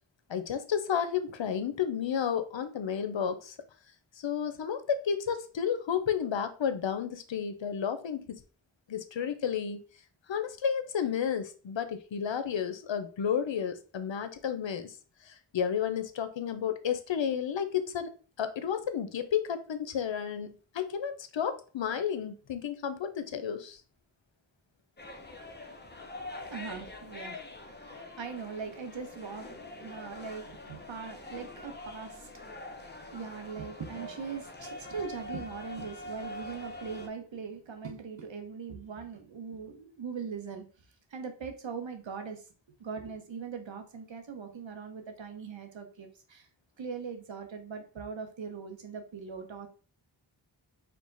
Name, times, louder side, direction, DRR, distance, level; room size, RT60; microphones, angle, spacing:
voice 1, 0.3-3.5 4.2-8.4 8.9-9.8 10.3-14.9 15.3-18.1 18.4-23.8, left 8 dB, 75° left, 9 dB, 0.6 m, -32 dB
sound 1, 25.0-37.1, left 2 dB, 25° left, 0.7 m, -44 dB
voice 2, 26.4-40.6 41.1-42.4 42.8-46.5 46.8-49.7, right 5 dB, 80° right, 5 dB, 0.9 m, -41 dB
4.6 x 2.2 x 3.8 m, 0.38 s
wide cardioid pair, 40°, 45 cm